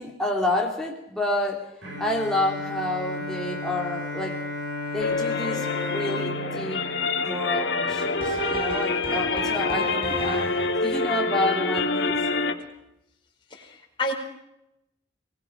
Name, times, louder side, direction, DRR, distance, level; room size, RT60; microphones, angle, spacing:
voice 1, 0.0-1.7 2.0-4.4 4.9-6.8 7.2-10.5 10.8-12.2, left 1 dB, 5° left, -2 dB, 3.1 m, -29 dB
Bowed string instrument, 1.8-8.0, left 2 dB, 90° right, 6.9 m, -34 dB
sound 1, 5.0-12.5, left 3 dB, 65° left, 2.4 m, -26 dB
sound 2, 7.5-10.9, right 3 dB, 30° right, 3.2 m, -35 dB
voice 2, 13.5-14.1, left 1 dB, 25° left, -1 dB, 4.6 m, -31 dB
23.5 x 19.5 x 6.0 m, 0.85 s
head